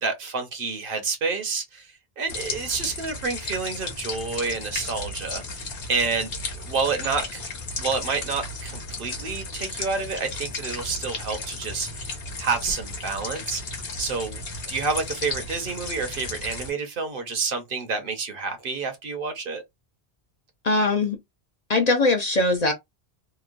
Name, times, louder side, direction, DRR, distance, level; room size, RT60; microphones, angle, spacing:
voice 1, 0.0-7.4 7.8-12.1 12.4-19.6, right 4 dB, 60° right, 0.9 m, -29 dB
sound 1, 2.3-16.7, left 3 dB, 65° left, 1.1 m, -34 dB
voice 2, 20.6-21.2 21.7-22.7, left 2 dB, 50° left, 0.6 m, -21 dB
2.9 x 2.1 x 2.5 m
omnidirectional pair, 1.1 m